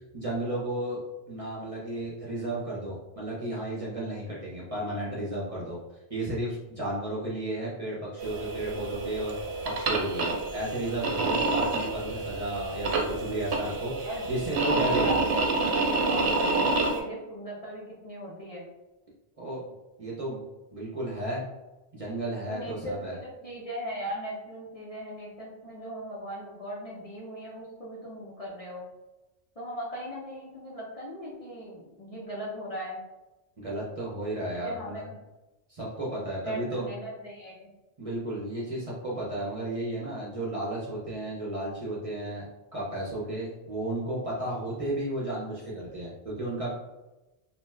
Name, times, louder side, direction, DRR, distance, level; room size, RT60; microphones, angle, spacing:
voice 1, 0.1-5.8 6.1-9.3 9.6-13.9 14.3-15.1 19.4-19.6 20.0-20.4 20.7-21.5 21.9-23.1 33.6-35.1 35.7-36.9 38.0-42.5 42.7-46.7, right 1 dB, 40° right, -6 dB, 0.6 m, -33 dB
sound 1, 8.2-17.0, right 3 dB, 90° right, 0.9 m, -28 dB
voice 2, 14.8-15.5 16.1-18.6 22.4-28.8 29.6-33.0 34.5-35.1 36.4-37.7, equal, 40° left, -6 dB, 0.6 m, -38 dB
2.7 x 2.2 x 3.2 m, 1.0 s
omnidirectional pair, 1.1 m